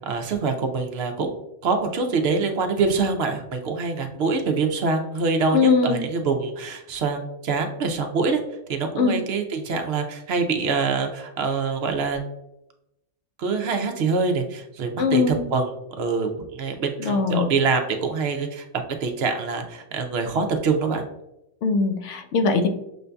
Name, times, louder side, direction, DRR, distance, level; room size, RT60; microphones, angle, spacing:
voice 1, 0.0-8.4 8.7-12.2 13.4-15.7 16.0-18.6 19.0-21.0, right 4 dB, 65° right, 5 dB, 0.7 m, -25 dB
voice 2, 5.5-6.1 9.0-9.2 15.0-15.5 17.0-17.5 21.6-22.7, left 4 dB, 75° left, 6 dB, 0.9 m, -21 dB
6.1 x 2.6 x 2.2 m, 0.87 s
omnidirectional pair, 1.3 m